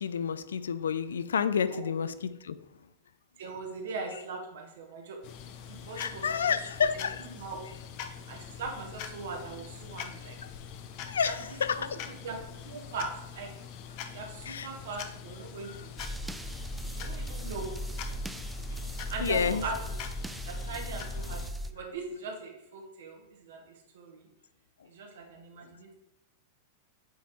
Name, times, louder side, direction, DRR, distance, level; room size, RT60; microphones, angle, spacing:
voice 1, 0.0-2.6 6.0-7.2 11.0-12.1 14.5-14.7 18.8-18.9 19.2-19.6, left 7 dB, 80° left, 0.3 m, -30 dB
voice 2, 3.4-5.2 5.7-6.5 6.9-7.6 8.3-10.4 11.0-11.4 11.7-12.4 12.6-13.5 14.1-15.9 16.9-17.7 19.1-19.8 20.4-24.3 24.9-25.9, right 4 dB, 70° right, 1.4 m, -40 dB
sound 1, 5.2-21.5, left 8 dB, 50° left, 0.7 m, -44 dB
sound 2, 16.0-21.7, equal, 5° right, 0.5 m, -37 dB
7.6 x 3.5 x 4.2 m
hypercardioid pair, 100°, 0 cm